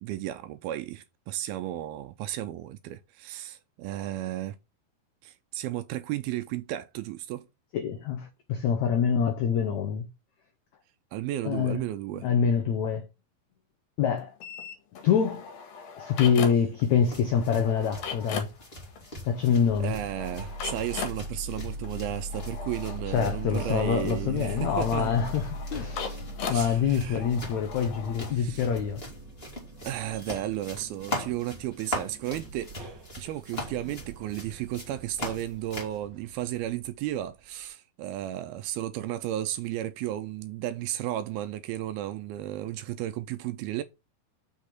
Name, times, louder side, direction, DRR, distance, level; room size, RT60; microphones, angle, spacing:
voice 1, 0.0-4.6 5.2-7.5 11.1-12.3 19.8-25.1 26.4-27.2 28.3-28.6 29.8-32.7 33.2-43.8, right 13 dB, 80° right, 2.3 m, -34 dB
voice 2, 7.7-10.0 11.4-11.8 12.2-13.1 14.0-14.3 15.0-15.4 16.0-18.5 19.3-20.0 21.5-21.7 23.0-29.0, left 7 dB, 90° left, 1.6 m, -26 dB
sound 1, 14.4-16.8 17.1-28.4, left 6 dB, 65° left, 3.1 m, -40 dB
sound 2, 16.8-36.0, left 1 dB, 20° left, 2.2 m, -42 dB
sound 3, 19.6-37.6, equal, 50° right, 1.2 m, -41 dB
6.4 x 5.3 x 5.9 m
omnidirectional pair, 4.6 m